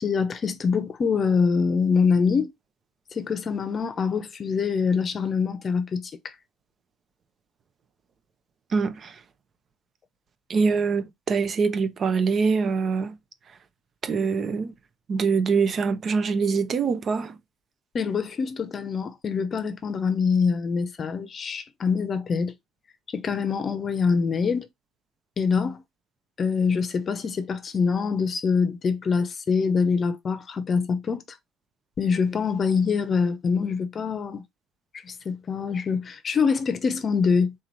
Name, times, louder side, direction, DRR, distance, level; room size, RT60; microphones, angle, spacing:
voice 1, 0.0-2.5 3.1-6.3 17.9-22.5 23.1-24.7 25.4-25.8 26.4-31.2 32.0-34.4 34.9-37.5, left 5 dB, 40° left, 0.7 m, -24 dB
voice 2, 8.7-9.2 10.5-13.2 14.0-14.7 15.1-17.3, right 5 dB, 45° right, 0.7 m, -24 dB
3.8 x 3.0 x 4.0 m
cardioid pair, 100°, 0 cm